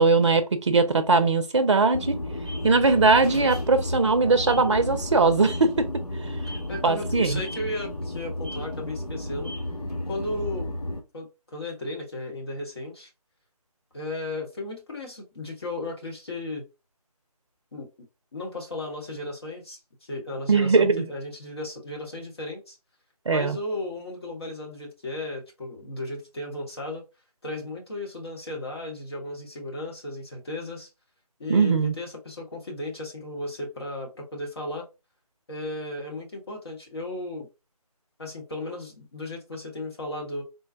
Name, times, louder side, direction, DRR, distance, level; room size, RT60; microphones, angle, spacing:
voice 1, 0.0-2.2 2.6-6.0 6.8-7.4 20.5-21.0 23.3-23.6 31.5-31.9, right 3 dB, 50° right, 0.6 m, -20 dB
sound 1, 1.9-11.0, left 1 dB, 75° left, 1.3 m, -32 dB
voice 2, 6.2-9.5 10.1-10.7 11.1-13.1 13.9-16.6 17.7-18.1 18.3-22.8 23.3-27.0 27.4-30.9 31.4-34.9 35.5-37.5 38.2-40.4, left 1 dB, 40° left, 1.1 m, -35 dB
3.8 x 2.1 x 2.5 m
figure-of-eight pair, 155°, 20 cm